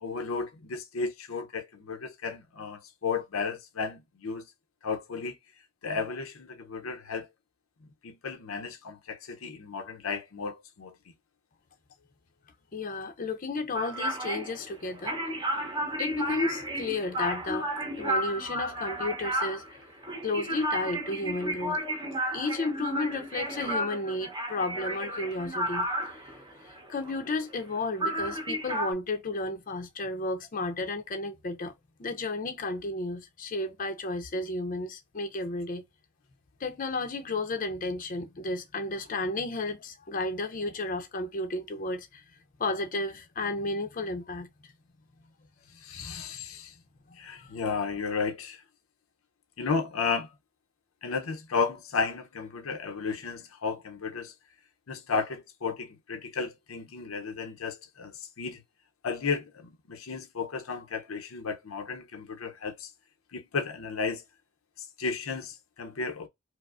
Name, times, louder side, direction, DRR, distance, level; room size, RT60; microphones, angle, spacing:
voice 1, 0.0-4.4 4.8-5.4 5.8-7.3 8.0-10.9 45.8-46.7 47.2-48.6 49.6-50.3 51.0-54.3 54.9-58.6 59.0-62.9 63.3-64.2 65.0-66.3, left 5 dB, 90° left, 0.6 m, -33 dB
voice 2, 12.7-15.2 16.0-17.7 18.0-19.8 20.2-21.8 22.3-25.9 26.9-31.7 32.0-35.8 36.6-42.2 42.6-44.5 46.0-46.2 47.3-47.5, left 2 dB, 40° left, 0.6 m, -32 dB
sound 1, 13.7-27.7 28.0-28.9, right 1 dB, 20° right, 0.8 m, -33 dB
4.7 x 2.0 x 2.4 m
head